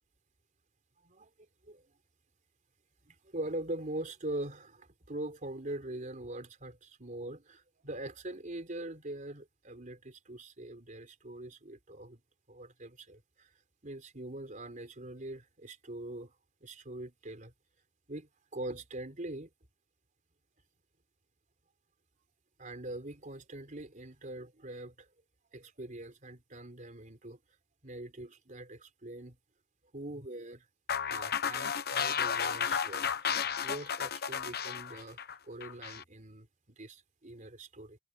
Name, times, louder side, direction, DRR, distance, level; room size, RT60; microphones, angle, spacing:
voice 1, 3.1-12.2 12.5-13.5 13.8-17.5 18.1-19.5 22.6-25.1 25.5-27.4 27.8-29.4 29.9-30.6 31.1-33.4 33.6-36.5 36.8-38.0, right 1 dB, 40° right, 3.7 m, -43 dB
sound 1, 30.9-36.0, left 7 dB, 55° left, 1.0 m, -33 dB
head